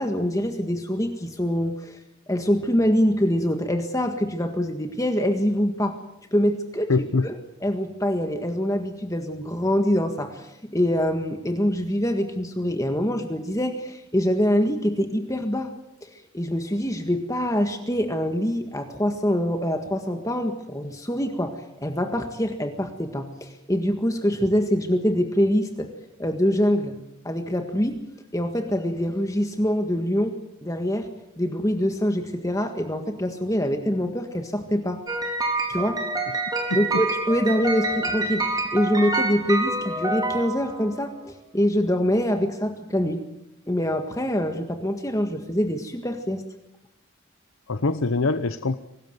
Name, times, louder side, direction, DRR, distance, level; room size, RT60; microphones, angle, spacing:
voice 1, 0.0-2.0 2.3-5.9 6.3-6.9 7.2-7.3 7.6-15.7 16.0-25.9 26.2-27.0 27.2-28.0 28.3-30.3 30.6-31.1 31.4-35.0 35.7-36.0 36.7-43.2 43.7-46.4, equal, 15° left, 5 dB, 1.6 m, -24 dB
voice 2, 6.9-7.3 36.7-37.0 47.7-48.8, left 3 dB, 85° left, 11 dB, 0.9 m, -24 dB
sound 1, 35.1-41.1, right 2 dB, 20° right, 4.0 m, -27 dB
24.5 x 19.0 x 8.0 m, 0.87 s
head